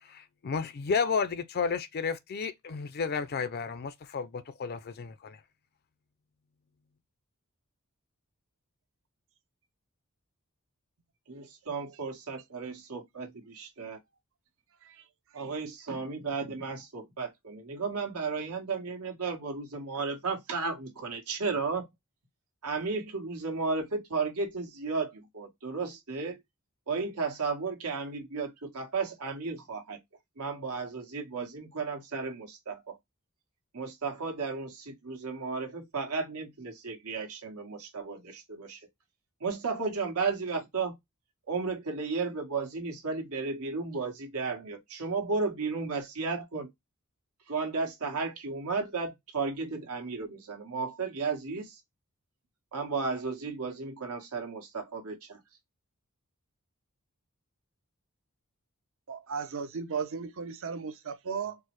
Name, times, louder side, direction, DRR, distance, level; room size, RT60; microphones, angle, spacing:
voice 1, 0.0-5.4, left 5 dB, 45° left, 0.4 m, -32 dB
voice 2, 11.3-14.0 15.3-21.9 22.6-26.4 26.9-30.0 30.4-33.0 33.7-38.8 39.4-40.9 41.5-46.7 47.5-51.8 52.7-55.4, right 4 dB, 85° right, 1.4 m, -34 dB
voice 3, 59.1-61.6, right 6 dB, 60° right, 0.6 m, -35 dB
4.5 x 2.1 x 3.0 m
head